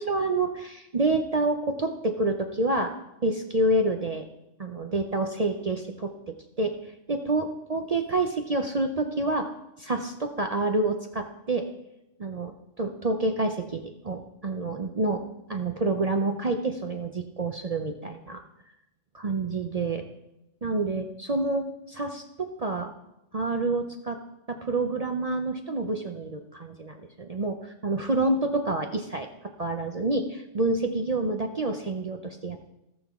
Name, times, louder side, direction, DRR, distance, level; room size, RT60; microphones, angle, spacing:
voice 1, 0.0-2.9 3.2-4.3 4.6-9.5 9.8-11.7 12.2-15.2 15.5-18.4 19.1-20.0 20.6-22.9 23.3-24.2 24.5-32.7, right 2 dB, 40° right, 4 dB, 0.6 m, -28 dB
17.5 x 6.3 x 3.6 m, 0.91 s
omnidirectional pair, 1.3 m